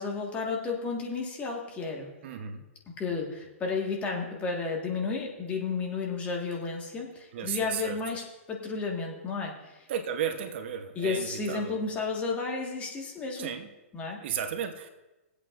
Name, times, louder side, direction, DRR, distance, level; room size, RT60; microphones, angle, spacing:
voice 1, 0.0-2.1 3.0-9.9 10.9-13.5 13.9-14.2, left 4 dB, 20° left, 0 dB, 1.6 m, -32 dB
voice 2, 2.2-2.6 7.3-8.0 9.9-11.8 13.4-13.7 14.2-14.9, right 8 dB, 50° right, 7 dB, 0.9 m, -34 dB
21.0 x 8.2 x 2.5 m, 1.1 s
hypercardioid pair, 145°, 8 cm